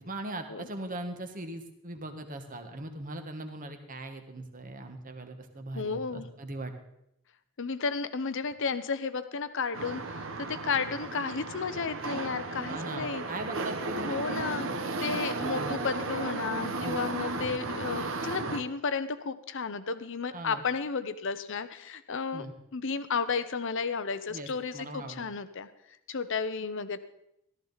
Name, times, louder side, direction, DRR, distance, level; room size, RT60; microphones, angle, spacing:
voice 1, 0.0-6.7 12.6-14.5 15.4-15.8 16.8-17.0 20.3-20.6 22.3-22.5 24.3-25.3, right 1 dB, 40° right, 6 dB, 1.4 m, -40 dB
voice 2, 5.7-6.3 7.6-13.2 14.0-14.7 15.0-22.5 22.7-25.7 26.1-27.0, left 5 dB, 60° left, 12 dB, 0.8 m, -33 dB
sound 1, 9.7-18.6, right 3 dB, 65° right, 1.0 m, -34 dB
14.0 x 13.0 x 4.0 m, 0.80 s
head